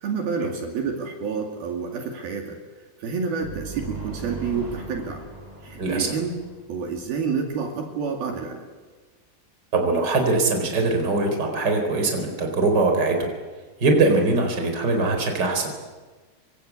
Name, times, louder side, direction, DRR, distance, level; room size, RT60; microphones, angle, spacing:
voice 1, 0.0-2.6 3.0-5.3 5.6-6.4 6.7-8.6 14.1-14.2, right 5 dB, 65° right, 2 dB, 4.2 m, -29 dB
sound 1, 3.4-7.1, right 2 dB, 10° right, 4.8 m, -38 dB
voice 2, 5.8-6.1 9.7-13.3 13.8-15.7, right 3 dB, 25° right, 4 dB, 4.4 m, -22 dB
27.0 x 24.5 x 8.3 m, 1.3 s
omnidirectional pair, 4.8 m